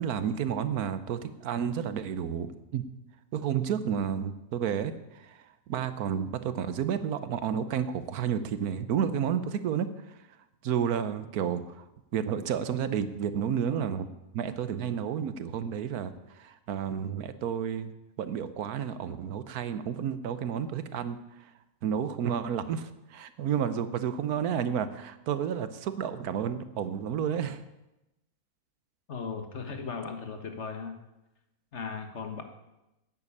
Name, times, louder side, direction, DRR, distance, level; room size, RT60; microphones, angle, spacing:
voice 1, 0.0-2.8 3.3-10.4 10.6-14.1 14.3-17.9 18.2-21.5 21.8-27.6, right 8 dB, 75° right, 12 dB, 1.3 m, -31 dB
voice 2, 29.1-30.9 31.7-32.4, left 5 dB, 50° left, 6 dB, 1.5 m, -37 dB
11.0 x 8.7 x 8.4 m, 0.95 s
omnidirectional pair, 1.6 m